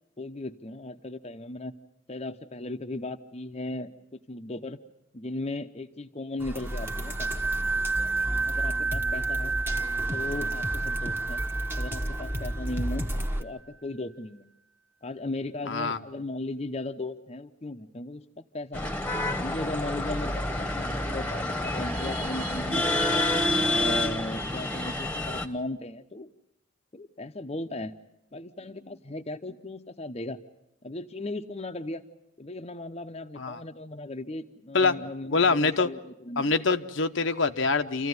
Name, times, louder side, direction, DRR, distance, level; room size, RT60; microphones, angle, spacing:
voice 1, 0.2-1.7 2.1-4.8 5.1-7.3 8.5-9.5 10.1-11.4 11.7-13.0 13.4-14.5 15.0-18.9 19.4-23.2 23.6-26.3 26.9-27.9 28.3-30.4 30.8-32.1 32.4-36.6, left 2 dB, 30° left, 6 dB, 0.8 m, -37 dB
sound 1, 6.4-13.4, equal, 10° right, 1.2 m, -33 dB
sound 2, 6.7-13.1, right 4 dB, 75° right, 1.2 m, -31 dB
voice 2, 15.7-16.0 33.4-33.6 34.7-34.9 35.3-35.9 36.4-38.1, left 4 dB, 65° left, 7 dB, 0.9 m, -24 dB
sound 3, 18.7-25.5, left 1 dB, 5° left, 1.2 m, -28 dB
28.0 x 15.0 x 9.5 m, 0.85 s
head